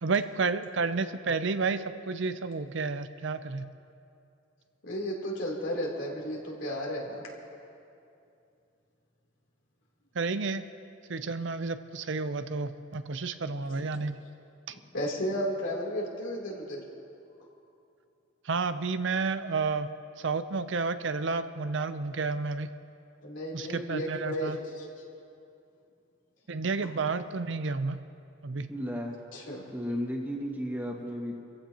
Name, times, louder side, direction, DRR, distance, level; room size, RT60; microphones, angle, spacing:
voice 1, 0.0-3.7 10.1-10.6 11.1-14.2 14.7-14.8 18.4-19.9 20.2-22.7 23.5-24.6 26.5-28.0 28.4-28.7, right 4 dB, 65° right, 11 dB, 0.6 m, -31 dB
voice 2, 4.8-7.2 14.9-16.8 23.2-24.8 29.3-29.6, equal, 75° left, -3 dB, 3.3 m, -33 dB
voice 3, 28.7-29.2 29.7-31.4, equal, 10° right, -2 dB, 1.9 m, -34 dB
28.0 x 15.0 x 2.9 m, 2.6 s
head